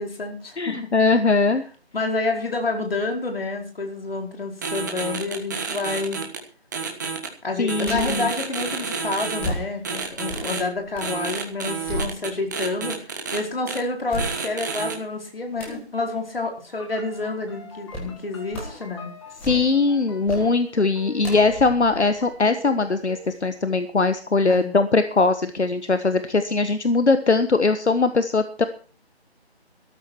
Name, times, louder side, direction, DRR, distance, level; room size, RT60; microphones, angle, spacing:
voice 1, 0.0-0.8 1.9-6.2 7.4-19.1 24.5-24.7, left 3 dB, 60° left, 2 dB, 4.9 m, -28 dB
voice 2, 0.6-1.6 7.6-8.3 19.4-28.7, left 3 dB, 85° left, 10 dB, 1.4 m, -21 dB
sound 1, 4.6-6.4 6.7-7.3 7.7-9.5 9.8-10.6 11.0-13.4 13.7-13.8 14.2-14.9, right 5 dB, 15° right, 1.4 m, -29 dB
sound 2, 7.8-8.3 9.4-11.2 11.5-12.6 13.2-13.3 14.1-14.8 15.6-15.9 17.9-18.2 18.5-18.9 19.2-19.9 20.3-20.5 21.2-22.9 23.3-23.4, equal, 5° left, 1.6 m, -33 dB
sound 3, 16.7-23.2, left 2 dB, 25° left, 2.5 m, -44 dB
13.5 x 13.0 x 4.6 m, 0.39 s
figure-of-eight pair, 165°, 33 cm